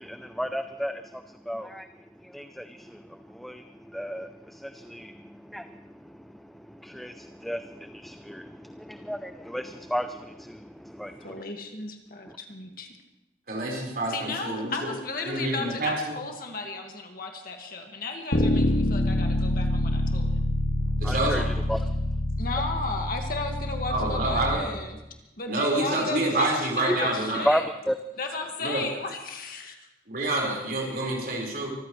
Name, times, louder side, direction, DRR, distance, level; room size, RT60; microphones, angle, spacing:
voice 1, 0.0-11.4 12.3-12.4 21.0-22.0 24.5-24.8 26.3-26.4 26.9-27.0 27.3-28.0, equal, ahead, 7 dB, 0.5 m, -34 dB
voice 2, 11.2-12.9 14.1-20.4 22.4-25.0 25.4-27.7 28.2-29.8, left 3 dB, 50° left, 3 dB, 1.8 m, -34 dB
voice 3, 13.5-14.9 15.2-16.2 21.0-21.5 23.9-24.6 25.5-27.5 28.6-28.9 30.1-31.7, right 2 dB, 55° right, -1 dB, 4.7 m, -27 dB
Bass guitar, 18.3-24.6, left 1 dB, 85° left, 2.1 m, -26 dB
24.5 x 14.5 x 3.2 m, 0.94 s
head